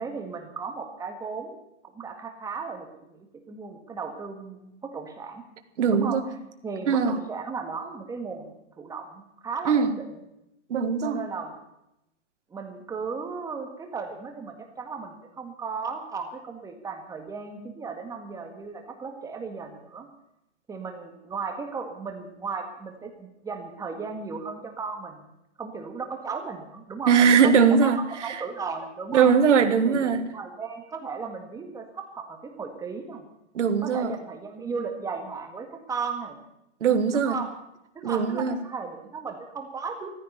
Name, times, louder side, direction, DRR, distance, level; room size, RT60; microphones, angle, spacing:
voice 1, 0.0-1.6 1.8-5.4 5.9-6.2 6.6-10.1 11.0-11.6 12.5-20.1 20.7-25.3 25.6-29.4 29.9-33.3 33.8-36.4 37.1-37.5 37.9-40.1, right 5 dB, 10° right, 4 dB, 1.8 m, -35 dB
voice 2, 5.8-6.2 6.9-7.2 9.7-9.9 10.7-11.2 27.1-28.4 29.1-30.2 33.5-34.1 36.8-37.4 38.0-38.6, right 6 dB, 80° right, 7 dB, 1.8 m, -21 dB
14.5 x 14.0 x 6.8 m, 0.84 s
hypercardioid pair, 155°, 35 cm